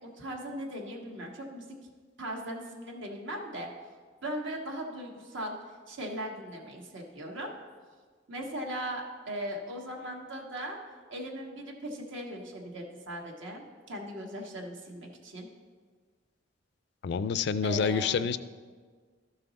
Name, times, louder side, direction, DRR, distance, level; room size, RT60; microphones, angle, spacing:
voice 1, 0.0-1.7 2.2-3.7 4.2-5.5 5.9-7.5 8.3-10.8 11.1-15.5 17.6-18.3, equal, 75° right, 0 dB, 1.4 m, -38 dB
voice 2, 17.0-18.4, left 6 dB, 65° left, 15 dB, 0.4 m, -28 dB
13.0 x 5.7 x 4.0 m, 1.5 s
head